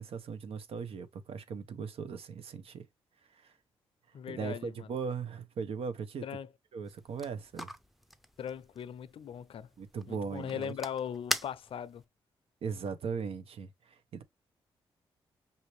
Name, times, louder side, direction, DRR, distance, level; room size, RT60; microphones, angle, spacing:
voice 1, 0.0-2.8 3.3-3.5 4.3-6.2 6.7-7.7 9.8-10.7 12.6-14.2, right 5 dB, 70° right, 0.9 m, -38 dB
voice 2, 4.1-4.9 6.2-6.5 8.4-9.7 10.1-12.0, left 8 dB, 65° left, 0.5 m, -39 dB
sound 1, 6.8-12.1, equal, ahead, 0.6 m, -42 dB
5.6 x 2.7 x 3.1 m
cardioid pair, 65°, 10 cm